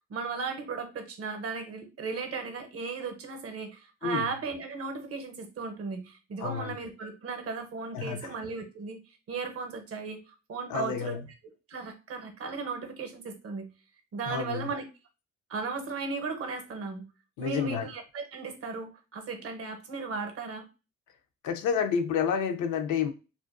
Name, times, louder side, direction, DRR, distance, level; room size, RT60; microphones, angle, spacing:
voice 1, 0.1-9.0 9.3-11.2 11.7-13.7 14.1-14.9 15.5-17.1 17.4-20.6, right 4 dB, 50° right, 0.7 m, -36 dB
voice 2, 4.0-4.3 6.4-6.8 7.9-8.3 10.7-11.2 14.3-14.7 17.4-17.9 21.4-23.1, left 7 dB, 75° left, 0.5 m, -30 dB
2.5 x 2.1 x 2.4 m
cardioid pair, 90°, 30 cm